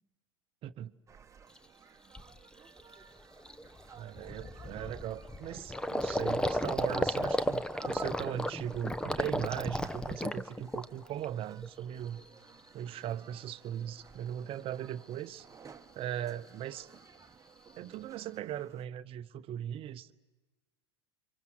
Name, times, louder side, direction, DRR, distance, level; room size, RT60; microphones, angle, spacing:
sound 1, 1.1-18.9, right 6 dB, 20° right, 1.3 m, -56 dB
Gurgling, 1.6-1.7 2.1-2.4 2.8-2.9 3.2-11.2 11.6-12.2, left 1 dB, 5° left, 0.9 m, -34 dB
voice 1, 3.9-12.2 12.7-15.5 15.9-16.9 17.8-20.1, right 11 dB, 40° right, 0.9 m, -39 dB
29.5 x 25.0 x 7.9 m
hypercardioid pair, 90°, 14 cm